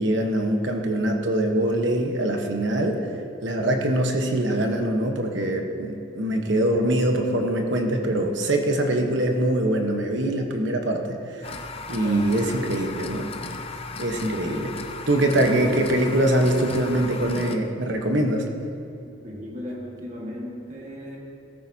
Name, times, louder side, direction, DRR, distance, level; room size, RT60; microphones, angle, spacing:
voice 1, 0.0-3.0 3.4-11.6 11.9-13.3 14.0-14.8 15.1-18.4, right 1 dB, 60° right, 3 dB, 1.2 m, -23 dB
sound 1, 11.4-17.6, left 4 dB, 30° left, 0.5 m, -36 dB
voice 2, 11.7-12.3 19.2-21.2, equal, 40° right, -2 dB, 1.7 m, -36 dB
14.5 x 13.5 x 2.8 m, 2.8 s
head